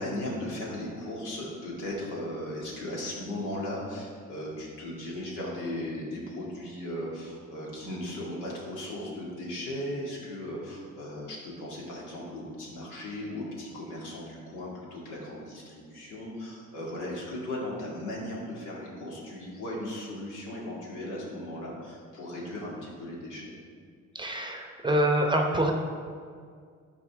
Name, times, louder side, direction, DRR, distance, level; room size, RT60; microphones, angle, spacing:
voice 1, 0.0-23.6, left 1 dB, 90° left, -4 dB, 2.1 m, -37 dB
voice 2, 24.1-25.7, right 1 dB, 15° right, 3 dB, 0.7 m, -25 dB
12.0 x 4.2 x 3.5 m, 2.1 s
cardioid pair, 90°, 30 cm